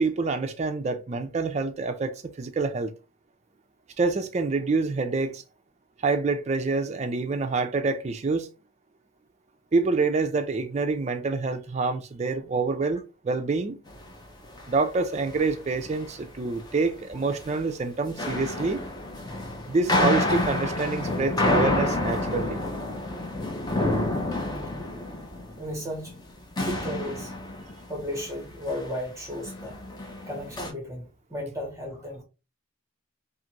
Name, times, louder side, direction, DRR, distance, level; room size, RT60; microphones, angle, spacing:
voice 1, 0.0-2.9 4.0-5.4 6.0-8.5 9.7-13.8 14.7-18.8 19.7-22.6 26.7-26.8, right 3 dB, 35° right, 0.3 m, -27 dB
sound 1, 13.9-14.1 14.4-14.8 15.1-16.8 17.1-17.5 18.0-26.3 26.6-28.4 28.7-29.0 29.3-30.7, left 2 dB, 20° left, 0.6 m, -29 dB
voice 2, 25.6-26.2 26.5-27.4 27.9-29.8 30.3-32.2, left 1 dB, 15° right, 1.0 m, -35 dB
2.5 x 2.5 x 2.9 m
head